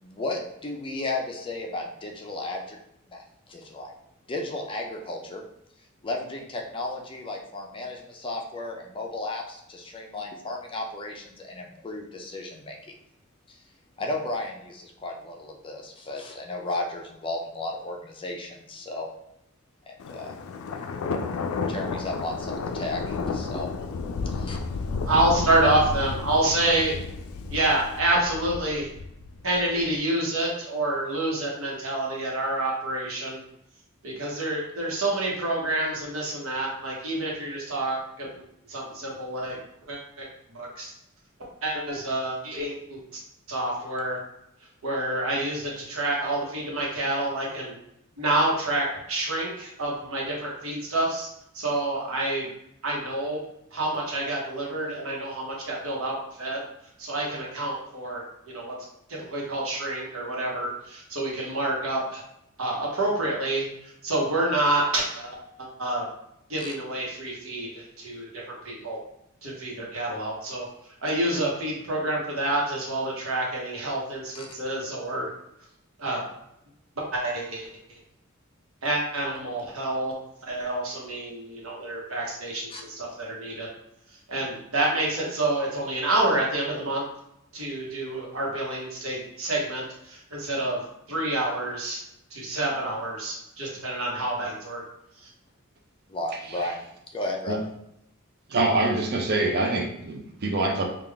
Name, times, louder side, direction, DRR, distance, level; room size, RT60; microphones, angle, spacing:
voice 1, 0.0-2.8 3.1-3.9 4.3-5.4 6.0-12.9 13.5-13.6 14.0-19.1 19.9-20.3 21.7-23.7 24.3-24.6 66.6-66.7 74.3-74.5 82.7-82.8 96.1-96.8 97.1-97.5, left 2 dB, 25° left, 1 dB, 0.5 m, -34 dB
Thunder, 20.0-29.8, left 4 dB, 90° left, 0.3 m, -32 dB
voice 2, 25.0-26.9 27.5-28.9 29.4-33.4 34.0-38.3 38.7-39.6 39.9-40.9 41.6-43.2 43.5-44.2 44.8-47.7 48.2-51.3 51.5-52.5 52.8-53.4 53.7-56.6 57.0-58.7 59.1-62.2 62.6-66.1 66.5-69.0 69.4-70.7 71.0-75.3 76.0-76.2 77.0-77.7 78.8-80.1 80.4-83.7 84.3-87.0 87.5-90.8 91.1-92.0 92.3-94.8 95.2-95.3, right 1 dB, 90° right, -2 dB, 1.1 m, -28 dB
voice 3, 98.5-100.8, right 2 dB, 50° right, 2 dB, 0.5 m, -25 dB
3.6 x 2.4 x 3.4 m, 0.79 s
head